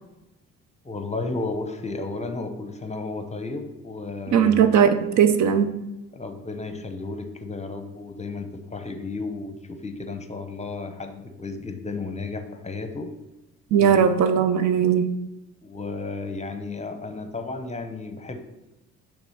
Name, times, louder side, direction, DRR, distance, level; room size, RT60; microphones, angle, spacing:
voice 1, 0.8-4.6 6.1-13.1 13.8-14.1 14.4-14.5 15.6-18.4, left 3 dB, 20° left, 7 dB, 0.8 m, -33 dB
voice 2, 4.3-5.7 13.7-15.1, right 8 dB, 55° right, 9 dB, 0.6 m, -19 dB
6.0 x 3.5 x 5.7 m, 0.96 s
supercardioid pair, 60°, 33 cm